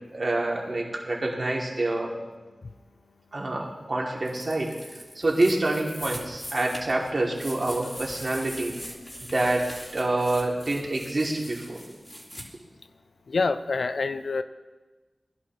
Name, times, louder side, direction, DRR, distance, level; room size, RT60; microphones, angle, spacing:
voice 1, 0.1-2.1 3.3-4.8 5.1-8.7 9.2-9.7 9.9-11.8, right 2 dB, 55° right, -2 dB, 2.9 m, -27 dB
sound 1, 4.2-12.4, equal, 15° left, 4.0 m, -41 dB
voice 2, 13.3-14.4, left 4 dB, 85° left, 11 dB, 0.5 m, -26 dB
19.5 x 11.5 x 3.2 m, 1.3 s
cardioid pair, 45°, 0 cm